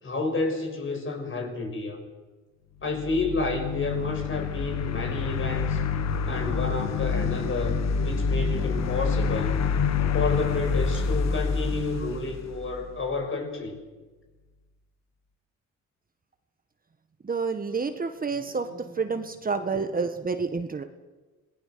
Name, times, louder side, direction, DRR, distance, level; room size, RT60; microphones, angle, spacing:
voice 1, 0.0-2.0 2.8-5.8 6.2-9.6 10.1-13.7 18.6-18.8 19.1-19.2, left 3 dB, 40° left, 3 dB, 6.4 m, -30 dB
sound 1, 2.9-13.1, left 5 dB, 60° left, 1.6 m, -27 dB
voice 2, 17.2-18.7 18.9-20.8, right 4 dB, 30° right, 7 dB, 1.5 m, -29 dB
26.5 x 19.0 x 6.9 m, 1.3 s
cardioid pair, 90°, 30 cm